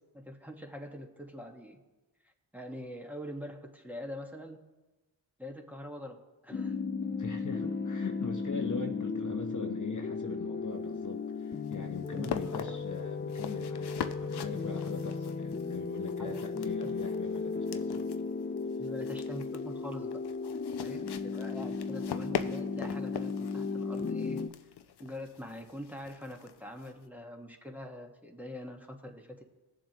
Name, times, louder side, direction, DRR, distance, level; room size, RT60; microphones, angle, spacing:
voice 1, 0.1-1.8 2.2-4.6 5.4-6.8 12.1-12.8 16.2-16.4 16.8-16.9 18.8-20.2 20.8-24.4 25.0-29.4, left 1 dB, 5° right, 1 dB, 1.4 m, -44 dB
sound 1, 6.5-24.5, left 4 dB, 20° left, 0.5 m, -35 dB
voice 2, 7.1-18.1 20.9-21.2, left 4 dB, 40° left, 3 dB, 1.0 m, -41 dB
sound 2, 10.7-27.1, left 8 dB, 55° left, 0.7 m, -43 dB
17.0 x 7.4 x 3.0 m, 1.1 s
supercardioid pair, 45°, 48 cm